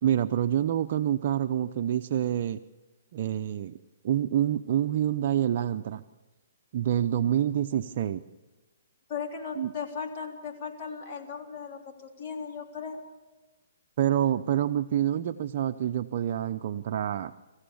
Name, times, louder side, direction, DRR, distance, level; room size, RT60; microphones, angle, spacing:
voice 1, 0.0-2.6 3.1-3.7 4.0-6.0 6.7-8.2 9.6-9.7 14.0-17.3, right 11 dB, 50° right, 8 dB, 0.6 m, -27 dB
voice 2, 9.1-13.0, left 6 dB, 40° left, 1 dB, 3.5 m, -37 dB
25.0 x 15.0 x 7.1 m, 1.2 s
hypercardioid pair, 145°, 0 cm